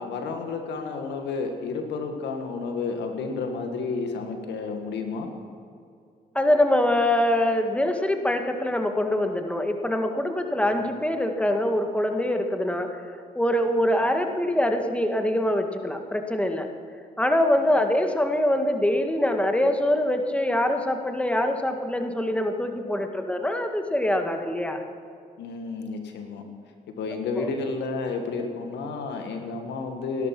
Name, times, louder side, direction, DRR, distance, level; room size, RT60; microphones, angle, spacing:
voice 1, 0.0-5.3 13.8-14.1 17.7-17.8 25.4-26.4 26.9-30.3, left 4 dB, 85° left, 5 dB, 1.8 m, -31 dB
voice 2, 6.4-13.0 13.4-16.7 17.2-24.8 27.4-27.5, left 1 dB, 5° left, 5 dB, 1.9 m, -24 dB
17.5 x 12.0 x 6.1 m, 2.4 s
supercardioid pair, 60°, 18 cm